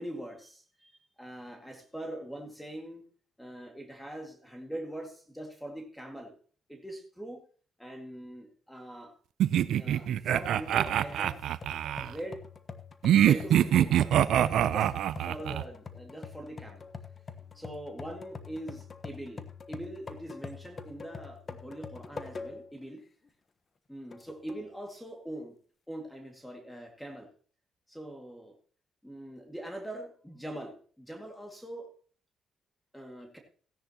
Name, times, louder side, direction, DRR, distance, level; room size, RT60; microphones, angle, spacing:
voice 1, 0.0-3.1 3.4-6.3 6.7-7.4 7.8-9.1 9.7-11.5 12.0-12.4 13.3-14.2 14.5-14.9 15.2-16.9 17.5-23.0 23.9-25.5 25.9-27.3 27.9-28.5 29.0-31.9 32.9-33.4, right 1 dB, 5° left, 2 dB, 2.2 m, -42 dB
sound 1, 9.4-12.1 13.0-15.6, right 11 dB, 75° right, 0.5 m, -24 dB
sound 2, 10.9-22.8 23.2-23.3 24.1-24.7, left 5 dB, 40° left, 1.1 m, -45 dB
17.0 x 10.0 x 2.9 m, 0.43 s
cardioid pair, 90°, 0 cm